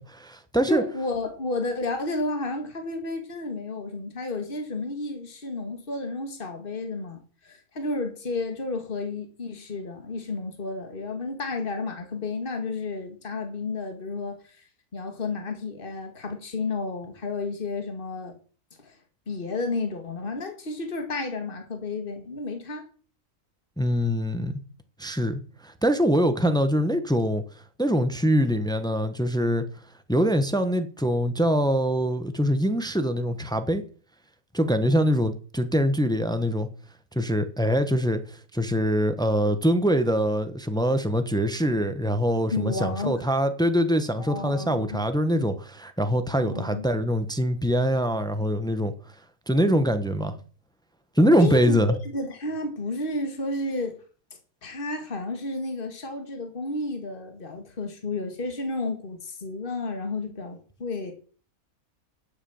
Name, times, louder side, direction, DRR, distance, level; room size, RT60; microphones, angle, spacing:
voice 1, 0.0-0.8 23.8-24.5 25.0-27.4 27.8-29.6 30.1-33.8 34.5-36.7 37.1-38.2 38.5-48.9 49.5-50.3 51.2-52.0, equal, 5° left, 1.1 m, -23 dB
voice 2, 0.7-14.7 14.9-18.3 18.8-18.9 19.3-22.8 42.5-43.3 44.2-45.0 46.4-46.8 51.3-51.8 52.1-54.0 54.6-61.1, left 3 dB, 35° left, 2.2 m, -32 dB
11.0 x 8.1 x 7.2 m
omnidirectional pair, 1.6 m